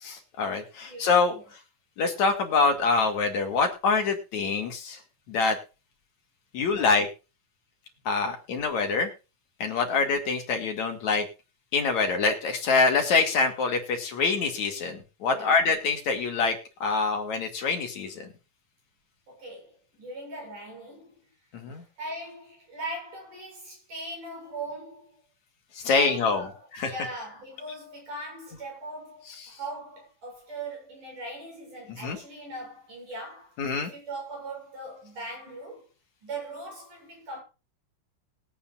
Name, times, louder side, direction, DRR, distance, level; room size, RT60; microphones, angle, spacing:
voice 1, 0.0-1.3 2.0-5.0 5.3-5.6 6.5-7.1 8.1-9.1 9.6-11.3 11.7-16.6 16.8-18.3 21.5-21.8 25.8-26.4 26.8-26.9 32.0-32.2 33.6-33.9, left 4 dB, 60° left, 3.0 m, -25 dB
voice 2, 0.8-1.5 6.7-6.9 15.3-15.6 19.3-21.2 21.7-25.2 25.8-35.8 36.2-37.4, right 2 dB, 65° right, 8.8 m, -40 dB
21.0 x 8.6 x 2.5 m
omnidirectional pair, 3.9 m